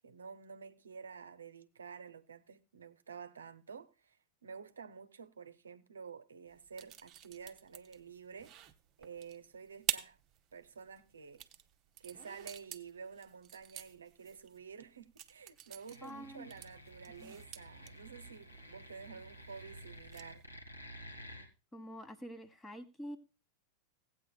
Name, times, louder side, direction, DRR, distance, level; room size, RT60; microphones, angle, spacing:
voice 1, 0.0-8.6 9.0-10.2 10.5-11.4 12.0-20.4, right 6 dB, 70° right, 0.6 m, -50 dB
sound 1, 6.5-20.4, right 11 dB, 35° right, 0.7 m, -47 dB
sound 2, 15.8-21.5, equal, 90° left, 1.9 m, -52 dB
voice 2, 16.0-16.5 17.2-17.4 21.7-23.2, equal, 15° left, 1.1 m, -46 dB
17.0 x 8.7 x 2.2 m
figure-of-eight pair, 90°, 0 cm